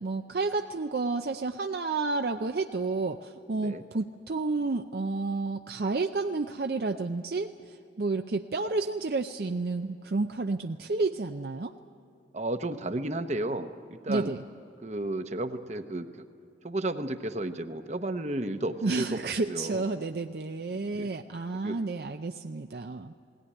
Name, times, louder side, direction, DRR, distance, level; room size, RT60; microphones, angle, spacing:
voice 1, 0.0-11.7 14.1-14.4 18.8-23.1, right 3 dB, 55° right, 6 dB, 0.5 m, -31 dB
voice 2, 12.3-13.7 14.0-14.3 14.8-16.1 16.6-19.1 19.5-19.8 20.7-21.1 21.6-21.8, right 1 dB, 40° right, 9 dB, 0.9 m, -32 dB
19.5 x 17.5 x 9.9 m, 2.6 s
head